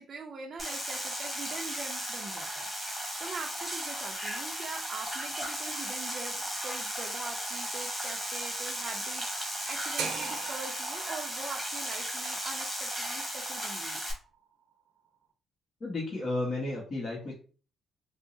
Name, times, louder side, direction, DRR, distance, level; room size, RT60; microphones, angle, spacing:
voice 1, 0.0-14.0, right 4 dB, 50° right, 0 dB, 0.5 m, -43 dB
sound 1, 0.6-14.1, equal, 5° left, 1.3 m, -35 dB
sound 2, 10.0-14.1, right 6 dB, 80° right, 0.7 m, -41 dB
voice 2, 15.8-17.4, left 2 dB, 45° left, -4 dB, 1.1 m, -33 dB
4.5 x 2.1 x 2.6 m, 0.39 s
cardioid pair, 90°, 0 cm